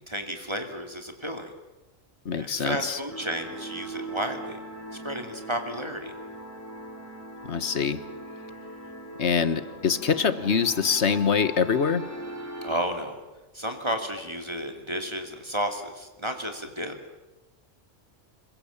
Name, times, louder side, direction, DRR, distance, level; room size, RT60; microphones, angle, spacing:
voice 1, 0.0-1.5 2.3-4.6 5.0-6.1 12.6-13.2 13.5-17.0, equal, 25° right, 5 dB, 2.6 m, -32 dB
voice 2, 2.2-3.0 7.4-8.0 9.2-12.1, left 6 dB, 65° left, 14 dB, 1.5 m, -24 dB
sound 1, 3.1-12.8, right 1 dB, 10° left, 3.3 m, -40 dB
27.0 x 22.0 x 7.2 m, 1.1 s
omnidirectional pair, 1.2 m